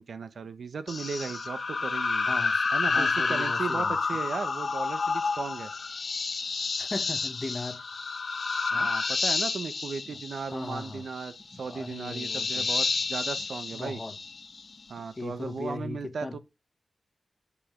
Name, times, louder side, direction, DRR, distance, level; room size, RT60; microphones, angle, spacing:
voice 1, 0.0-2.3 2.7-5.7 8.7-14.0 14.9-16.4, right 5 dB, 75° right, 1.4 m, -36 dB
sound 1, 0.9-14.7, left 4 dB, 55° left, 1.3 m, -30 dB
voice 2, 2.2-4.0 6.8-7.8 8.7-8.9 10.0-10.2 10.5-11.1 11.5-12.7 13.7-14.2 15.2-16.4, left 3 dB, 25° left, 1.5 m, -38 dB
8.7 x 7.6 x 7.3 m
wide cardioid pair, 95°, 0 cm